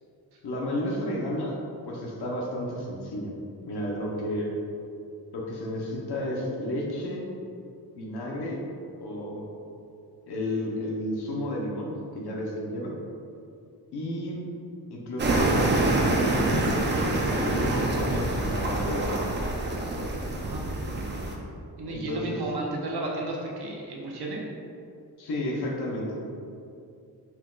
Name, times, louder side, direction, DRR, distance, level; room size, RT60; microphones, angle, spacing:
voice 1, 0.4-1.6 1.9-3.3 3.6-4.5 5.3-7.3 8.0-8.6 9.0-9.5 10.3-12.9 13.9-14.4 14.9-15.7 16.5-19.2 21.9-22.4 25.2-26.2, left 1 dB, 85° left, -3 dB, 0.9 m, -32 dB
sound 1, 15.2-21.4, right 2 dB, 30° right, 0.4 m, -26 dB
voice 2, 21.8-24.4, right 2 dB, 75° right, -2 dB, 0.8 m, -33 dB
4.4 x 2.3 x 3.8 m, 2.5 s
wide cardioid pair, 165°, 39 cm